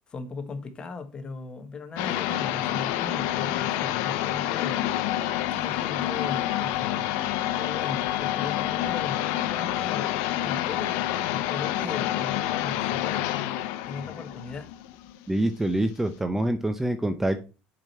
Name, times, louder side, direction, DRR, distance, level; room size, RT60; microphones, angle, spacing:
voice 1, 0.1-4.9 5.5-7.1 7.6-13.3 13.8-14.7, left 4 dB, 25° left, 1.3 m, -38 dB
sound 1, 2.0-15.4, left 13 dB, 80° left, 0.7 m, -28 dB
voice 2, 15.3-17.4, right 1 dB, 10° right, 0.6 m, -26 dB
7.3 x 5.0 x 4.2 m
cardioid pair, 140°, 4 cm